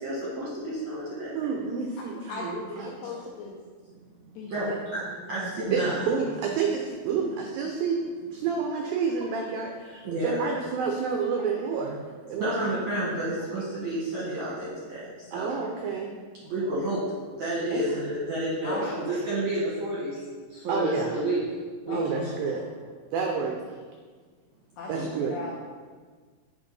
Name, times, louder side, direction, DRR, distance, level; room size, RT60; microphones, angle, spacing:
voice 1, 0.0-1.3 4.5-5.0 5.3-6.0 10.0-10.5 12.4-15.0 15.3-15.5 16.5-17.0 17.4-20.2 20.6-21.4 21.9-22.3 24.9-25.1, right 1 dB, 70° right, -6 dB, 1.7 m, -30 dB
voice 2, 1.4-2.9 5.7-12.5 15.3-16.1 17.7-17.8 20.7-21.1 21.9-22.6 23.1-23.6 24.9-25.3, right 5 dB, 85° right, 2 dB, 2.0 m, -29 dB
voice 3, 2.0-3.6 4.4-4.8 5.3-5.8 16.4-16.7 18.6-19.2 21.9-22.6 23.2-23.3 24.8-25.6, left 3 dB, 80° left, -3 dB, 2.0 m, -39 dB
8.1 x 4.4 x 5.3 m, 1.5 s
omnidirectional pair, 4.9 m